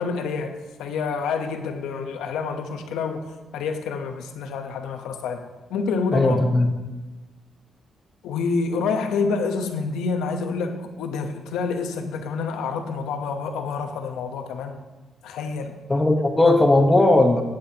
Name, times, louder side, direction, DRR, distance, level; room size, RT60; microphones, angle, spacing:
voice 1, 0.0-3.3 3.5-6.4 8.2-14.8 15.2-15.7, left 5 dB, 90° left, 6 dB, 0.9 m, -28 dB
voice 2, 6.1-6.7 15.9-17.4, left 2 dB, 20° left, 4 dB, 1.1 m, -17 dB
16.5 x 7.6 x 2.9 m, 1.2 s
cardioid pair, 75°, 0 cm